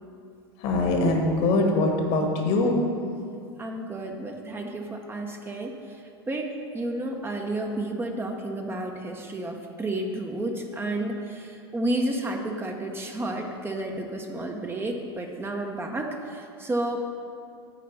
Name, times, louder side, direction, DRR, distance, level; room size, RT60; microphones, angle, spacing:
voice 1, 0.6-2.8, left 2 dB, 50° left, 2 dB, 1.4 m, -23 dB
voice 2, 3.6-6.0 6.3-17.2, right 1 dB, 15° right, 2 dB, 0.8 m, -31 dB
8.2 x 4.2 x 6.9 m, 2.5 s
hypercardioid pair, 90°, 14 cm